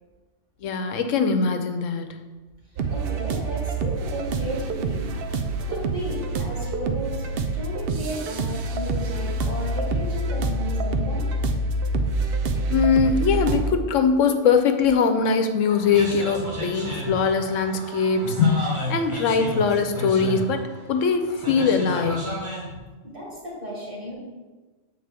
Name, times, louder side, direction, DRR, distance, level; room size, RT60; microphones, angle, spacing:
voice 1, 0.6-2.2 12.7-22.4, left 5 dB, 85° left, 7 dB, 1.0 m, -22 dB
sound 1, 2.8-13.7, right 2 dB, 60° right, 0.7 m, -26 dB
voice 2, 2.9-5.1 5.7-7.3 7.5-11.3 23.0-24.1, equal, 45° right, -5 dB, 2.3 m, -34 dB
sound 2, 15.7-22.7, right 1 dB, 25° right, 1.4 m, -33 dB
7.9 x 4.4 x 3.4 m, 1.3 s
omnidirectional pair, 1.3 m